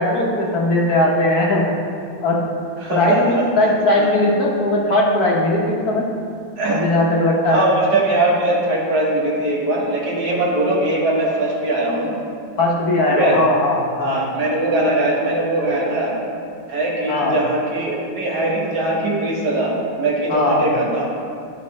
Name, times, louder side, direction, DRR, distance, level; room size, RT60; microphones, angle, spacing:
voice 1, 0.0-1.6 2.2-2.4 2.9-6.1 6.7-7.6 12.6-14.2 17.1-17.4 20.3-20.6, left 1 dB, 55° left, -2 dB, 1.2 m, -18 dB
voice 2, 2.8-4.1 6.6-6.9 7.5-12.2 13.1-13.4 14.0-16.1 16.7-21.0, right 2 dB, 55° right, -4 dB, 1.8 m, -21 dB
11.0 x 4.3 x 4.2 m, 2.3 s
omnidirectional pair, 2.3 m